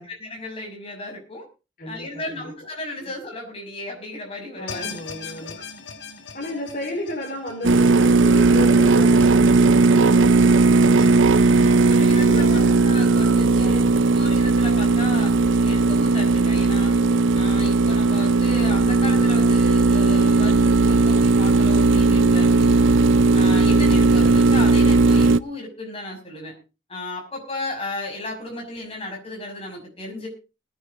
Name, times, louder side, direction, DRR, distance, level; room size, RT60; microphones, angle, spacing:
voice 1, 0.0-1.5 1.9-4.9 5.4-5.5 11.3-12.4 12.8-13.8 14.1-15.3 15.6-17.0 17.3-22.9 23.3-26.5 26.9-30.3, left 2 dB, 30° left, 0 dB, 6.0 m, -34 dB
voice 2, 1.8-2.5 4.6-5.6 6.3-11.1 11.6-12.9 13.6-14.0 17.6-18.1, left 1 dB, 45° left, -1 dB, 4.6 m, -33 dB
Horn Echo.L, 4.7-9.9 10.3-10.4 11.0-11.1, left 5 dB, 65° left, 1.5 m, -39 dB
sound 1, 7.6-25.4, right 3 dB, 75° right, 0.6 m, -17 dB
21.0 x 9.8 x 3.8 m, 0.31 s
head